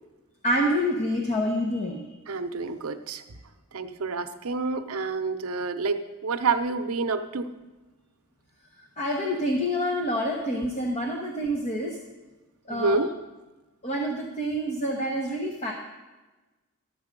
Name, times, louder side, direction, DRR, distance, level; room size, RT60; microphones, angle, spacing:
voice 1, 0.4-2.0 9.0-12.0 12.7-13.0 13.8-15.7, equal, 30° left, 1 dB, 0.9 m, -27 dB
voice 2, 2.3-3.2 3.7-7.4 12.7-13.1, right 4 dB, 70° right, 8 dB, 0.7 m, -28 dB
11.5 x 7.5 x 5.2 m, 1.2 s
head